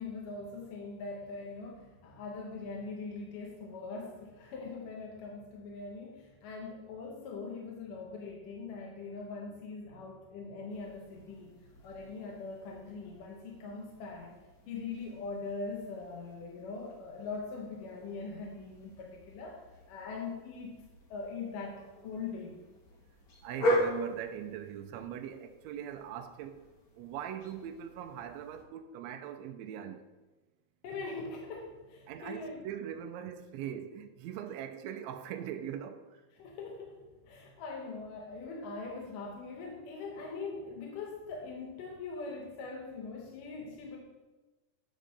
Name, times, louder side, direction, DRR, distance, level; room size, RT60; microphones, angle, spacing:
voice 1, 0.0-14.3 14.7-19.6 19.9-20.8 21.1-22.6 30.8-32.7 36.4-44.0, left 4 dB, 75° left, 2.6 m, -42 dB
sound 1, 10.7-28.6, equal, 55° left, 1.0 m, -40 dB
voice 2, 23.4-26.7 27.0-30.1 32.1-36.2, right 9 dB, 90° right, 1.5 m, -41 dB
8.5 x 5.2 x 6.3 m
omnidirectional pair, 3.8 m